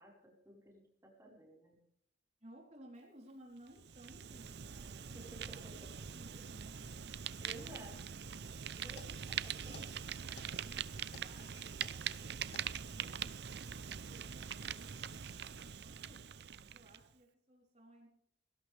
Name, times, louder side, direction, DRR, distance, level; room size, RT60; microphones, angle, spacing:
voice 1, 0.0-1.8 5.1-5.2 7.4-8.0 8.6-9.9, right 1 dB, 15° right, -2 dB, 4.6 m, -55 dB
voice 2, 2.4-5.6 6.1-6.9 7.4-8.0 9.3-10.1 10.6-18.1, right 1 dB, 40° right, -2 dB, 3.6 m, -60 dB
Fire, 3.7-17.0, right 8 dB, 65° right, 0.6 m, -43 dB
sound 1, 9.0-16.7, left 4 dB, 70° left, 1.8 m, -60 dB
18.5 x 17.5 x 3.4 m, 0.73 s
head